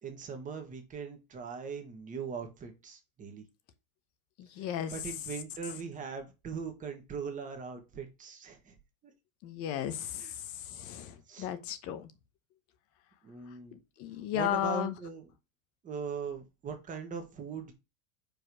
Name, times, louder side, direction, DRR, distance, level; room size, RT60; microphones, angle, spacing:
voice 1, 0.0-3.4 4.6-8.7 10.1-10.3 11.3-11.5 13.2-13.8 14.3-15.3 15.8-17.7, right 5 dB, 20° right, 1.6 m, -40 dB
voice 2, 4.4-4.9 9.4-10.2 10.7-12.1 14.0-14.9, left 11 dB, 35° left, 1.1 m, -34 dB
5.3 x 4.5 x 6.2 m
supercardioid pair, 150°, 42 cm